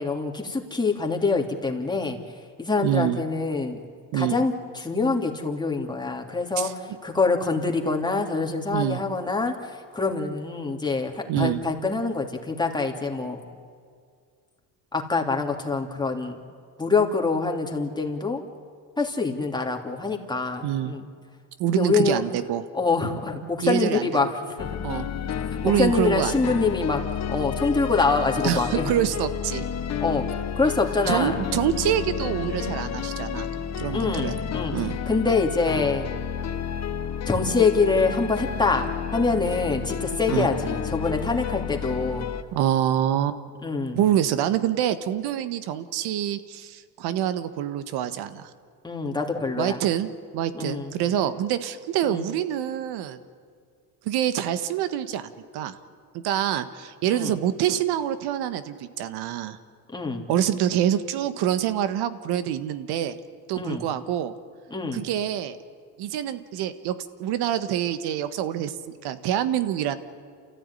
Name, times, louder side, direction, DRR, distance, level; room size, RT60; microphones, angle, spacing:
voice 1, 0.0-2.2 2.6-3.8 4.1-13.4 14.9-16.4 16.8-18.4 19.0-21.0 21.7-22.2 22.7-24.3 24.6-24.8 25.6-27.0 27.3-28.9 30.0-30.3 30.6-31.4 33.9-34.7 35.1-36.1 37.3-42.3 43.6-44.0 48.8-49.8 50.5-50.9 52.0-52.3 57.1-57.3 59.9-60.2 63.5-63.8 64.7-65.0, left 4 dB, 10° left, 1 dB, 3.2 m, -25 dB
voice 2, 2.8-3.2 4.1-4.4 6.6-6.7 8.7-9.0 11.3-11.6 20.6-20.9 21.6-22.6 23.6-24.1 24.8-25.1 25.6-26.4 28.4-29.7 30.6-30.7 31.1-33.5 33.8-34.4 34.7-35.0 39.5-39.6 40.3-40.5 42.5-43.4 43.9-48.5 49.5-53.2 54.0-55.8 56.1-59.6 60.3-63.2 63.5-64.3 64.9-65.6 66.0-68.8 69.0-70.0, right 11 dB, 75° right, 12 dB, 1.6 m, -26 dB
sound 1, 24.6-42.4, left 8 dB, 40° left, 1.2 m, -31 dB
29.0 x 14.5 x 9.9 m, 2.1 s
supercardioid pair, 95°, 40 cm